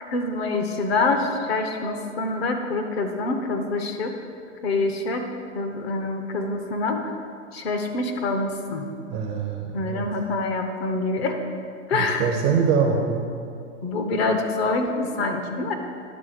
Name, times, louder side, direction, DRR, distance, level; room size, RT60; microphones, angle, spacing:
voice 1, 0.1-4.2 4.6-5.3 5.5-7.1 7.5-8.9 9.7-11.4 11.9-12.3 13.8-15.7, left 3 dB, 55° left, 5 dB, 1.1 m, -26 dB
voice 2, 9.1-10.1 11.9-13.2, right 6 dB, 20° right, 1 dB, 0.4 m, -24 dB
10.5 x 3.6 x 6.7 m, 2.3 s
hypercardioid pair, 135°, 38 cm